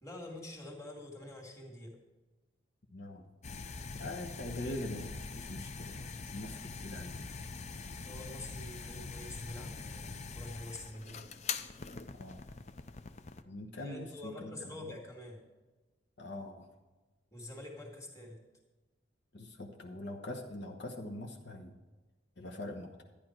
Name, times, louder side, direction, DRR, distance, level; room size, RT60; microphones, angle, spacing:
voice 1, 0.0-2.0 8.0-11.4 13.8-15.4 17.3-18.4, left 1 dB, 15° left, 0 dB, 2.1 m, -46 dB
voice 2, 2.9-3.2 4.0-6.0 6.3-7.3 12.1-12.5 13.5-14.5 14.8-14.9 16.2-16.7 19.3-21.8 22.4-22.9, left 1 dB, 65° left, 1 dB, 1.1 m, -43 dB
sound 1, 3.4-13.4, left 4 dB, 35° left, 0.5 m, -43 dB
12.0 x 10.5 x 4.5 m, 1.2 s
head